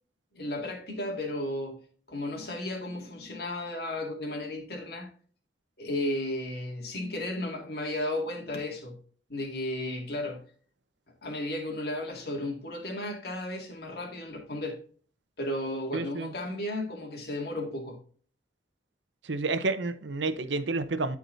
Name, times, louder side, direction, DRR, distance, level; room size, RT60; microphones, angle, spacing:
voice 1, 0.3-1.8 2.1-5.1 5.8-9.0 9.3-10.4 11.2-14.8 15.4-18.0, left 1 dB, 55° left, 2.2 m, -34 dB
voice 2, 15.9-16.3 19.3-21.2, right 3 dB, 75° right, 0.9 m, -30 dB
13.0 x 4.8 x 2.7 m
head